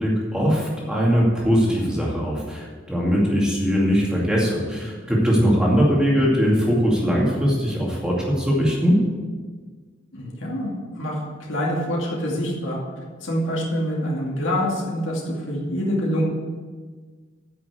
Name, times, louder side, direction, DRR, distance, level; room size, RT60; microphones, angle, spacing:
voice 1, 0.0-9.0, equal, 5° right, -4 dB, 2.4 m, -20 dB
voice 2, 10.1-11.2 11.5-12.8 13.2-16.2, equal, 80° left, -3 dB, 2.4 m, -25 dB
9.5 x 6.1 x 8.2 m, 1.5 s
head